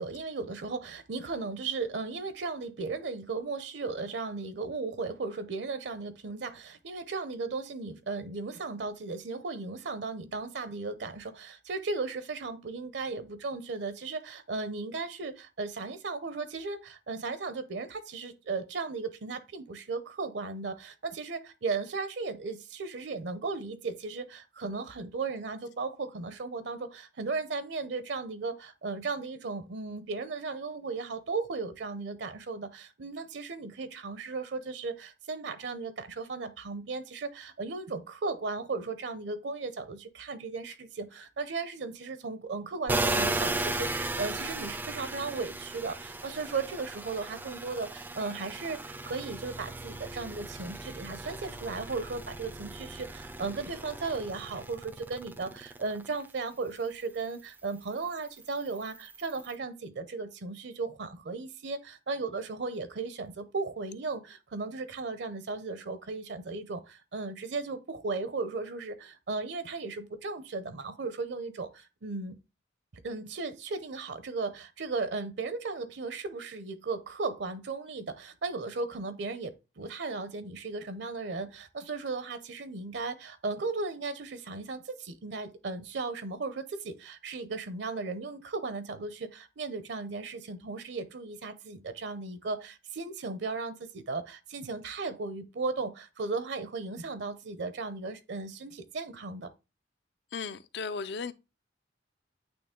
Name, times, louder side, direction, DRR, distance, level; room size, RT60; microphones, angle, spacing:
voice 1, 0.0-72.4 73.0-99.5, right 4 dB, 65° right, 0.6 m, -36 dB
sound 1, 42.9-56.3 56.7-59.6, right 2 dB, 10° right, 0.3 m, -36 dB
voice 2, 100.3-101.3, left 5 dB, 60° left, 0.5 m, -35 dB
8.8 x 3.0 x 3.6 m
head